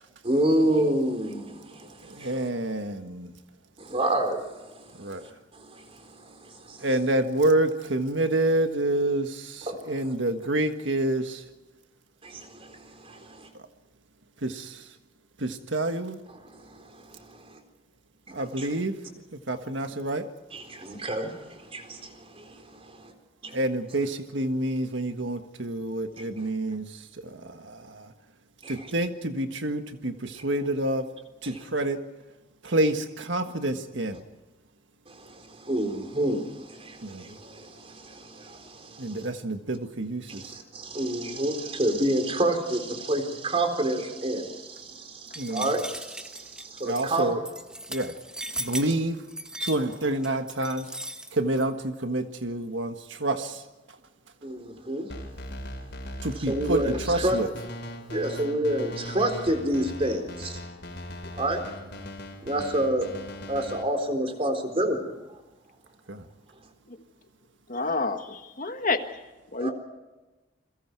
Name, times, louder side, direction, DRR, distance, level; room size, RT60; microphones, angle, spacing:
voice 1, 0.2-2.5 3.8-6.9 9.7-10.1 12.2-13.5 16.3-17.6 18.3-18.7 20.5-23.1 23.4-23.6 26.2-26.5 28.6-28.9 31.4-31.6 35.1-39.3 40.3-47.5 54.4-55.1 56.4-57.4 58.1-60.6 61.4-61.6 62.4-63.1 63.5-65.1 69.6-69.7, right 1 dB, 30° right, 6 dB, 3.9 m, -29 dB
voice 2, 2.1-3.3 5.0-5.2 6.8-11.4 14.4-14.8 15.4-16.2 18.3-19.0 19.3-20.3 23.5-26.9 27.2-28.1 28.7-31.1 31.4-32.0 32.6-34.2 37.0-37.3 39.0-40.4 45.4-45.7 46.8-47.4 47.9-48.1 48.6-49.2 49.6-50.9 51.3-53.6 56.2-57.5 66.1-66.2, right 1 dB, 80° right, 7 dB, 1.6 m, -28 dB
sound 1, 45.3-51.7, right 1 dB, 5° right, 1.4 m, -37 dB
sound 2, 55.1-63.8, equal, 65° left, 4.6 m, -39 dB
voice 3, 67.7-69.0 69.5-69.7, left 3 dB, 45° left, 7 dB, 1.7 m, -28 dB
29.0 x 22.5 x 4.7 m, 1.1 s
head